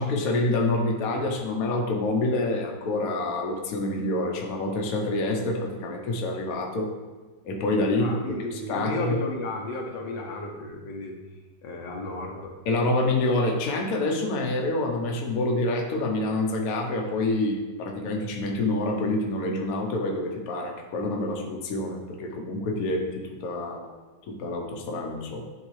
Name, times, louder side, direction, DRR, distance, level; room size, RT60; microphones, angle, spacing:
voice 1, 0.0-6.9 7.4-9.2 12.7-23.9 24.3-25.4, left 2 dB, 60° left, 1 dB, 1.2 m, -27 dB
voice 2, 8.0-11.2 11.6-12.5, left 2 dB, 85° left, 0 dB, 1.7 m, -33 dB
10.5 x 3.8 x 3.2 m, 1.3 s
omnidirectional pair, 1.9 m